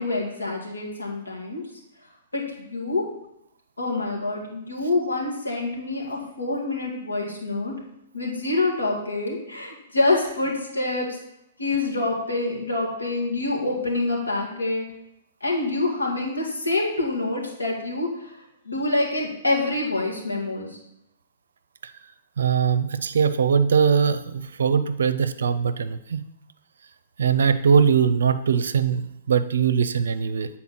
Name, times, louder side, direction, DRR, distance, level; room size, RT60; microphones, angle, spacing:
voice 1, 0.0-1.6 2.3-2.4 2.7-3.0 3.8-7.7 8.1-11.1 11.6-14.8 15.4-18.3 18.6-20.8, left 2 dB, 80° left, -2 dB, 2.2 m, -26 dB
voice 2, 22.4-26.2 27.2-30.5, right 6 dB, 65° right, 12 dB, 0.5 m, -21 dB
8.4 x 4.3 x 5.6 m, 0.83 s
figure-of-eight pair, 110°, 0 cm